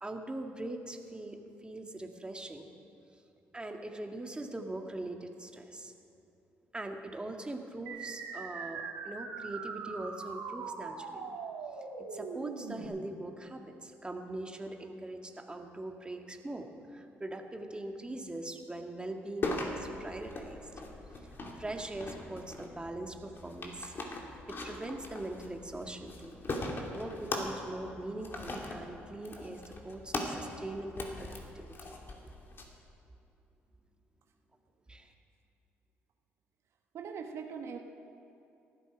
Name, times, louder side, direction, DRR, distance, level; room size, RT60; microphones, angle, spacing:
voice 1, 0.0-2.7 3.5-5.9 6.7-11.4 12.1-20.7 21.6-23.9 24.5-26.4 26.9-31.9 32.2-32.3 34.9-35.1, right 2 dB, 20° right, 3 dB, 1.8 m, -42 dB
sound 1, 7.9-12.9, right 5 dB, 80° right, 2.2 m, -41 dB
sound 2, 19.4-32.6, left 2 dB, 45° left, 2.7 m, -40 dB
voice 2, 36.9-37.8, right 6 dB, 60° right, 4 dB, 1.1 m, -41 dB
18.5 x 13.0 x 5.0 m, 2.9 s
supercardioid pair, 60°, 5 cm